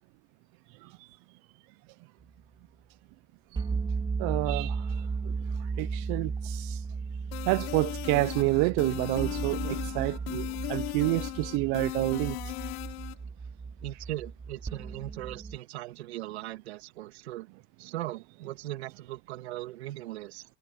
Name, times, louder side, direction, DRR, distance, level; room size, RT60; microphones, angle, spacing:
sound 1, 3.6-15.6, right 5 dB, 15° right, 2.8 m, -35 dB
voice 1, 4.2-6.8 7.4-12.5, right 24 dB, 45° right, 0.7 m, -29 dB
sound 2, 7.3-13.1, left 23 dB, 65° left, 5.7 m, -37 dB
voice 2, 13.8-17.5 17.8-20.4, right 16 dB, 85° right, 2.9 m, -39 dB
supercardioid pair, 145°, 32 cm